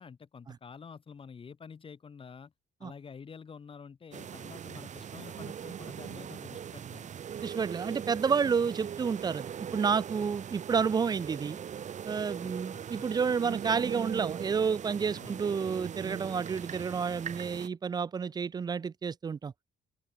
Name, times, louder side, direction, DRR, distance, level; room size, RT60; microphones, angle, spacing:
voice 1, 0.0-2.5 2.8-7.1 8.6-8.7 12.4-12.9 15.2-15.4, left 6 dB, 25° left, 2.5 m, -48 dB
sound 1, 4.1-17.7, right 8 dB, 35° right, 1.6 m, -40 dB
voice 2, 7.4-11.6 12.1-19.5, right 6 dB, 20° right, 0.4 m, -30 dB
open air
cardioid pair, 165°, 20 cm